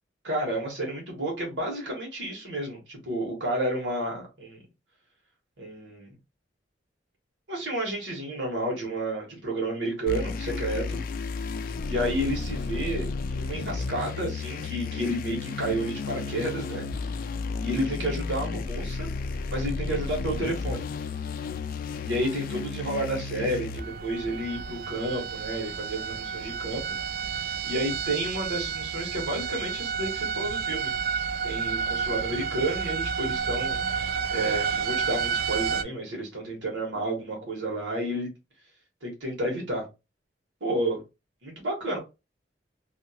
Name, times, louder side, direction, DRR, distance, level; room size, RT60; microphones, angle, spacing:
voice 1, 0.2-4.6 5.6-6.2 7.5-11.0 11.9-16.8 17.6-19.1 19.5-20.9 22.0-26.8 27.6-30.9 31.4-33.8 34.3-38.3 39.0-39.8 40.6-41.0 41.4-42.0, right 1 dB, 85° right, 1.5 m, -31 dB
sound 1, 10.1-23.8, left 4 dB, 50° left, 0.3 m, -33 dB
sound 2, 23.8-35.8, right 6 dB, 55° right, 0.3 m, -30 dB
2.8 x 2.8 x 2.8 m
head